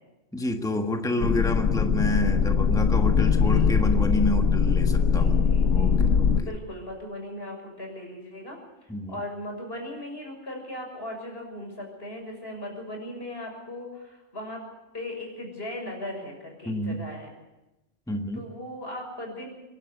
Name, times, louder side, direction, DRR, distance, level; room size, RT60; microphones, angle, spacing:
voice 1, 0.3-6.5 8.9-9.2 16.6-17.0 18.1-18.4, left 1 dB, 5° left, 5 dB, 1.5 m, -29 dB
sound 1, 1.2-6.4, left 6 dB, 75° left, 1.4 m, -21 dB
voice 2, 3.2-3.7 5.1-6.0 6.4-14.6 14.9-17.3 18.3-19.5, left 1 dB, 45° left, 0 dB, 6.8 m, -38 dB
25.0 x 11.5 x 9.9 m, 1.0 s
omnidirectional pair, 1.4 m